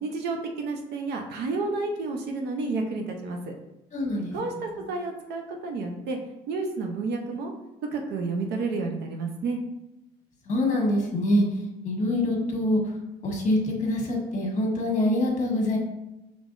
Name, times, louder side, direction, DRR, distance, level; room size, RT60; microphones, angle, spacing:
voice 1, 0.0-3.5 4.3-6.2 6.5-7.5 7.9-9.6, right 3 dB, 75° right, 3 dB, 0.8 m, -30 dB
voice 2, 3.9-4.7 10.5-11.5 11.8-12.8 13.2-15.8, left 1 dB, 45° left, -1 dB, 1.4 m, -25 dB
5.1 x 3.3 x 2.6 m, 0.95 s
cardioid pair, 110°, 17 cm